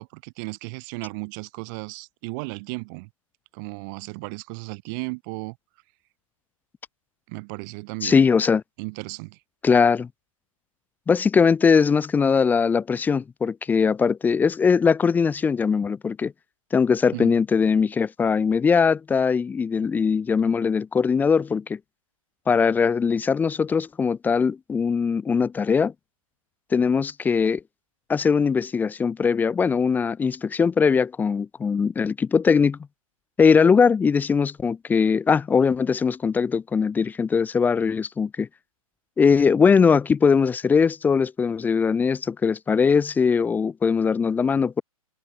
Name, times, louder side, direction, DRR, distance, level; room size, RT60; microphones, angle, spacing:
voice 1, 0.0-3.1 3.5-5.5 7.3-8.3 8.8-9.4 17.1-17.4, right 31 dB, 35° right, 4.8 m, -35 dB
voice 2, 8.0-8.6 9.6-10.1 11.1-16.3 16.7-21.8 22.5-25.9 26.7-27.6 28.1-32.8 33.4-38.5 39.2-44.8, left 5 dB, 10° left, 1.3 m, -20 dB
figure-of-eight pair, 120°, 19 cm